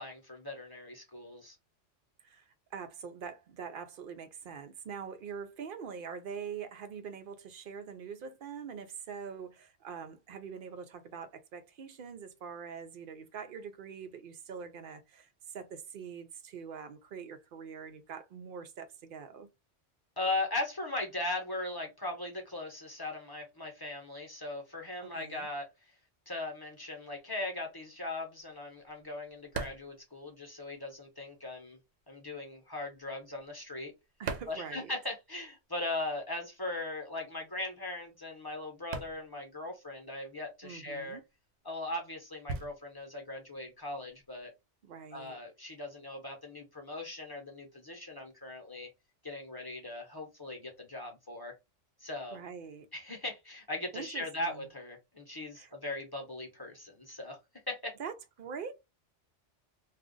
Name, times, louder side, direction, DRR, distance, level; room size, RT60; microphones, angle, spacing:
voice 1, 0.0-1.6 20.2-25.7 26.3-31.8 32.1-33.9 34.5-41.2 41.6-44.5 45.1-48.9 49.2-51.5 52.0-52.4 52.9-57.4 57.7-57.9, left 2 dB, 20° left, 0.8 m, -39 dB
voice 2, 2.7-19.5 25.0-25.5 34.2-34.9 40.6-41.2 44.8-45.4 52.3-52.9 53.9-54.6 55.6-55.7 58.0-58.7, right 6 dB, 55° right, 0.7 m, -44 dB
sound 1, 27.8-31.1 31.3-35.5 35.7-44.5, right 5 dB, 85° right, 0.9 m, -44 dB
2.4 x 2.3 x 3.7 m
omnidirectional pair, 1.2 m